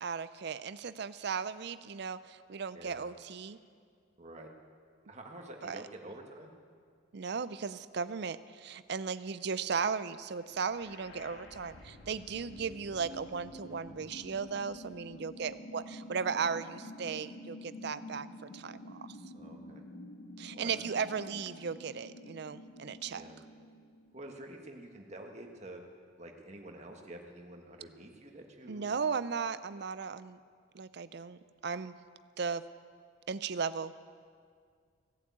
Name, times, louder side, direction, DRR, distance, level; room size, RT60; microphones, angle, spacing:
voice 1, 0.0-3.6 5.6-5.8 7.1-18.3 18.5-19.2 20.4-23.2 28.7-30.4 30.7-32.0 32.4-32.6 33.3-33.9, right 6 dB, 55° right, 15 dB, 0.5 m, -36 dB
voice 2, 2.7-3.1 4.2-4.5 5.1-6.5 19.3-19.8 20.5-20.9 23.1-23.4 24.1-25.8 26.2-28.9, right 1 dB, 35° right, 2 dB, 1.5 m, -48 dB
sound 1, 10.4-24.4, left 1 dB, 70° left, 1.8 m, -49 dB
16.5 x 8.4 x 8.4 m, 2.1 s
head